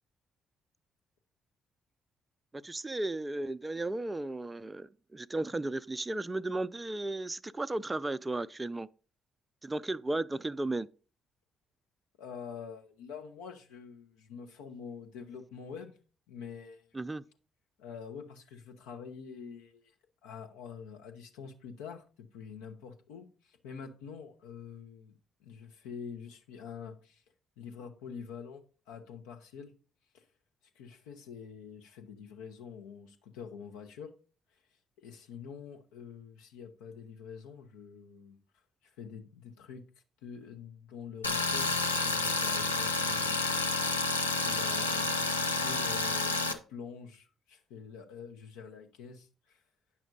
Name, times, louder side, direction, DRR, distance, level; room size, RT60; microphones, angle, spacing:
voice 1, 2.5-8.9 9.6-10.9 16.9-17.2, right 2 dB, 20° right, 0.4 m, -35 dB
voice 2, 12.2-15.9 16.3-16.8 17.8-19.9 20.2-27.2 27.6-29.7 30.1-30.2 30.7-34.1 35.0-38.4 38.8-39.8 40.2-43.4 44.4-49.6, left 6 dB, 70° left, 1.1 m, -46 dB
Tools, 41.2-46.5, left 3 dB, 90° left, 0.5 m, -30 dB
9.9 x 6.0 x 4.0 m
figure-of-eight pair, 45°, 0 cm